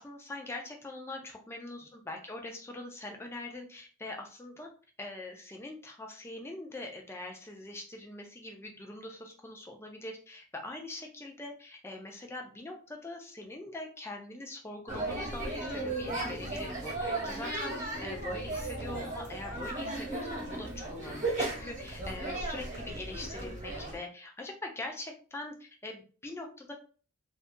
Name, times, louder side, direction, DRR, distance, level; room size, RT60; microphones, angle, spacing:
voice 1, 0.0-4.7 5.0-26.7, left 2 dB, 10° left, 2 dB, 0.4 m, -43 dB
sound 1, 14.9-24.0, right 2 dB, 35° right, 1.1 m, -36 dB
2.6 x 2.4 x 2.2 m, 0.40 s
head